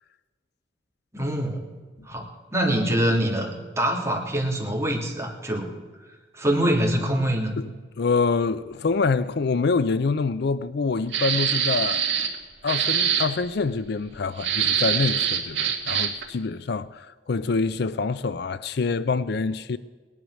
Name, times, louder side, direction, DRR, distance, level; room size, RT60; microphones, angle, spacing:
voice 1, 1.1-1.6 2.0-5.7 6.3-7.5, right 1 dB, 15° right, 3.2 m, -24 dB
voice 2, 8.0-12.0 12.6-19.8, left 4 dB, 60° left, 0.5 m, -26 dB
sound 1, 11.1-12.4 12.7-13.3 14.4-16.2, right 8 dB, 75° right, 2.1 m, -24 dB
19.0 x 11.0 x 6.4 m
head